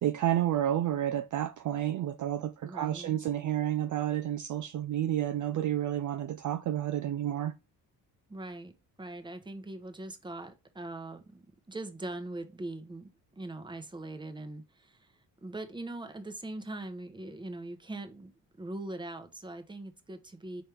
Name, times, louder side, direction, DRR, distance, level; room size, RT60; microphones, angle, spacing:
voice 1, 0.0-7.5, right 11 dB, 45° right, 0.4 m, -30 dB
voice 2, 2.6-3.1 8.3-18.3 18.6-20.6, right 2 dB, 10° right, 0.9 m, -41 dB
4.4 x 3.3 x 3.3 m
supercardioid pair, 65°, 42 cm